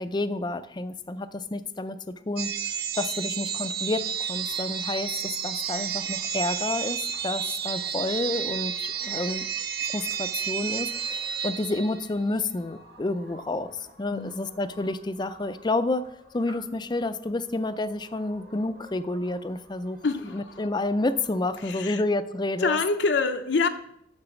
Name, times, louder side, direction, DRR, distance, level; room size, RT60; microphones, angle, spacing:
voice 1, 0.0-2.5 2.9-5.1 5.4-9.5 9.9-13.7 14.0-16.1 16.3-20.0 20.3-22.8, left 2 dB, 25° left, 12 dB, 0.5 m, -29 dB
sound 1, 2.4-12.2, right 8 dB, 60° right, 0.7 m, -31 dB
sound 2, 3.6-21.8, equal, 75° right, 2.7 m, -53 dB
voice 2, 14.1-14.5 20.0-20.6 21.6-22.0 22.6-23.7, left 4 dB, 70° left, 6 dB, 0.7 m, -26 dB
12.0 x 4.1 x 7.0 m, 0.76 s
head